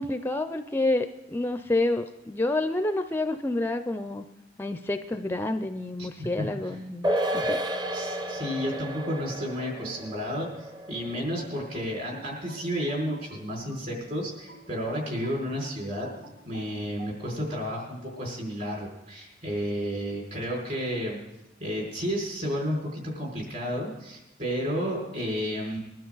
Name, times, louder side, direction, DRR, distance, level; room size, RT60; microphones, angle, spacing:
voice 1, 0.0-4.3 4.6-7.6, left 2 dB, 10° left, 9 dB, 0.4 m, -28 dB
voice 2, 6.0-6.5 7.9-16.1 16.5-21.2 21.6-25.8, equal, 50° right, -2 dB, 5.2 m, -32 dB
sound 1, 7.0-13.7 14.0-14.1, right 1 dB, 25° right, 0.7 m, -33 dB
sound 2, 11.4-14.0 14.5-17.2, right 2 dB, 70° right, 4.3 m, -50 dB
21.5 x 12.0 x 3.9 m, 0.98 s
head